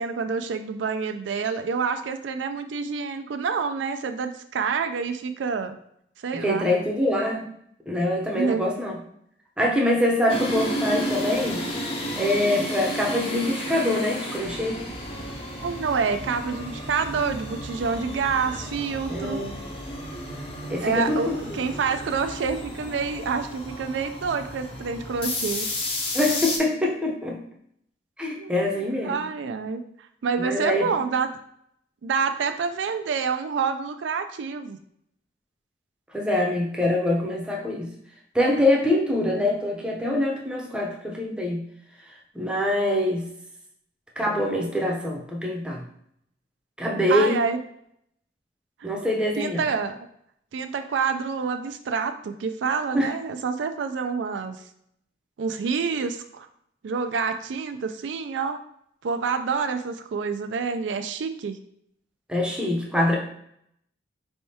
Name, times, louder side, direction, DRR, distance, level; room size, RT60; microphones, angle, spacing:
voice 1, 0.0-5.8 6.2-6.7 8.4-8.7 15.6-19.4 20.8-25.7 28.4-29.8 30.2-31.3 32.0-34.8 47.1-47.6 48.8-50.0 50.5-54.6 55.4-56.5 56.8-58.6 59.0-61.6, right 5 dB, 90° right, 8 dB, 0.4 m, -27 dB
voice 2, 6.3-7.6 7.9-9.0 9.6-11.6 12.1-14.8 19.1-19.5 20.7-21.4 26.1-27.4 28.2-29.2 30.4-30.9 36.1-37.9 38.3-41.6 42.3-43.3 44.2-45.8 46.8-47.4 48.8-49.6 52.9-53.1 62.3-63.2, left 1 dB, 5° right, -1 dB, 0.6 m, -24 dB
sound 1, 10.3-26.6, equal, 30° left, 0.7 m, -32 dB
4.4 x 3.4 x 2.7 m, 0.71 s
head